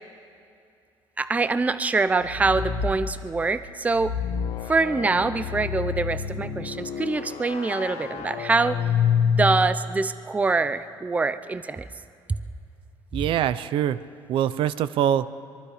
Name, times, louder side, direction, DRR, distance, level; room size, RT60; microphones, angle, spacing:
voice 1, 1.2-4.1 4.7-8.8 9.3-11.8, right 3 dB, 15° right, 13 dB, 0.6 m, -24 dB
sound 1, 2.0-3.0 3.8-9.8, left 7 dB, 90° left, 1.7 m, -28 dB
voice 2, 13.1-14.0 14.3-15.3, right 10 dB, 65° right, 14 dB, 0.6 m, -23 dB
24.5 x 22.5 x 5.0 m, 2.5 s
cardioid pair, 130°, 9 cm